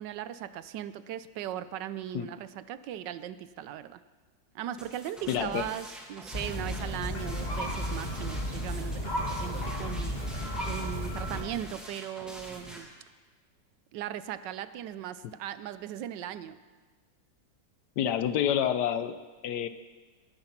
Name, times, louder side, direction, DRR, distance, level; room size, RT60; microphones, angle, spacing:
voice 1, 0.0-4.0 4.5-12.9 13.9-16.6, right 11 dB, 75° right, 14 dB, 1.2 m, -38 dB
sound 1, 4.8-12.8, equal, ahead, 2.2 m, -46 dB
voice 2, 5.3-5.6 18.0-19.2 19.4-19.7, left 9 dB, 70° left, 12 dB, 1.2 m, -28 dB
sound 2, 6.3-11.4, equal, 20° left, 2.5 m, -33 dB
18.5 x 9.7 x 5.8 m, 1.4 s
omnidirectional pair, 2.0 m